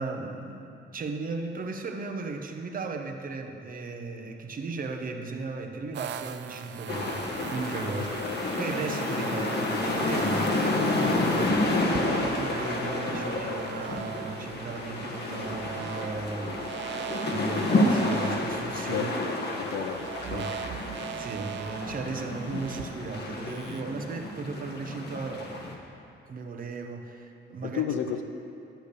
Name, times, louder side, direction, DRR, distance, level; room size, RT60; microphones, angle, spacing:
voice 1, 0.0-8.2 8.6-16.7 17.2-19.1 20.3-20.5 21.2-25.5 26.3-27.8, right 3 dB, 45° right, 3 dB, 1.0 m, -36 dB
sound 1, 5.9-23.8, right 9 dB, 65° right, 0.5 m, -41 dB
sound 2, 6.9-25.8, left 2 dB, 55° left, 1.3 m, -30 dB
voice 2, 8.0-8.4 18.8-19.3 19.6-20.5 27.6-28.2, left 9 dB, 85° left, 6 dB, 0.6 m, -33 dB
10.5 x 5.1 x 6.7 m, 2.7 s
cardioid pair, 90°, 20 cm